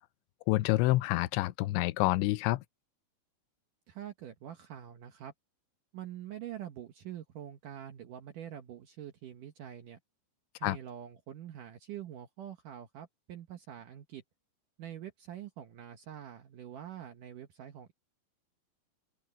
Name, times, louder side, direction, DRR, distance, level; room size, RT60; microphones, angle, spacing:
voice 1, 0.5-2.6 10.6-10.8, left 19 dB, 85° left, 3.0 m, -28 dB
voice 2, 3.9-5.3 5.9-10.0 10.6-14.2 14.8-17.9, right 10 dB, 70° right, 2.0 m, -45 dB
omnidirectional pair, 5.2 m